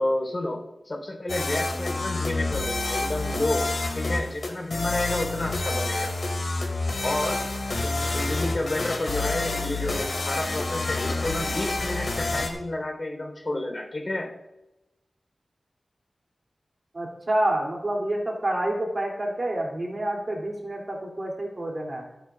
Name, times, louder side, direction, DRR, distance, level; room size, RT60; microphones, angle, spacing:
voice 1, 0.0-6.1 7.0-7.4 7.8-14.3, left 1 dB, 45° left, 1 dB, 3.9 m, -30 dB
sound 1, 1.3-12.5, left 2 dB, 65° left, 2.5 m, -28 dB
voice 2, 16.9-22.1, right 1 dB, 45° right, -1 dB, 3.0 m, -28 dB
25.5 x 8.9 x 2.5 m, 0.95 s
wide cardioid pair, 70°, 0 cm